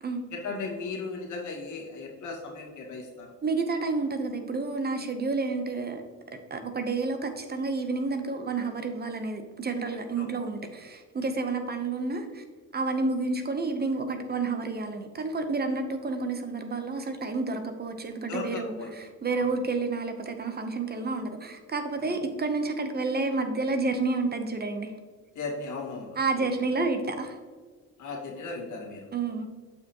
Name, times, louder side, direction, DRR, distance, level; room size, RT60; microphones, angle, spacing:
voice 1, 0.3-3.3 10.2-10.3 18.3-18.9 19.4-19.6 22.0-22.2 25.3-26.5 28.0-29.1, left 4 dB, 75° left, -1 dB, 1.8 m, -37 dB
voice 2, 3.4-6.0 6.5-12.4 12.7-18.7 19.2-24.9 26.2-27.4 29.1-29.5, right 3 dB, 35° right, 7 dB, 0.8 m, -30 dB
7.0 x 6.2 x 3.0 m, 1.5 s
cardioid pair, 90°, 30 cm